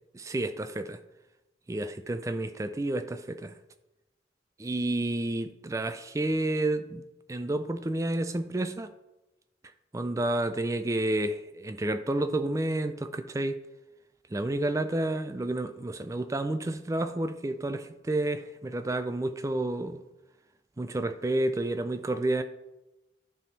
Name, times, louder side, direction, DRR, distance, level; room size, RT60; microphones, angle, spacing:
voice 1, 0.1-1.0 1.7-3.5 4.6-8.9 9.9-13.6 14.3-20.0 20.8-22.4, right 1 dB, 15° right, 9 dB, 0.3 m, -30 dB
10.0 x 3.6 x 4.1 m, 0.99 s
head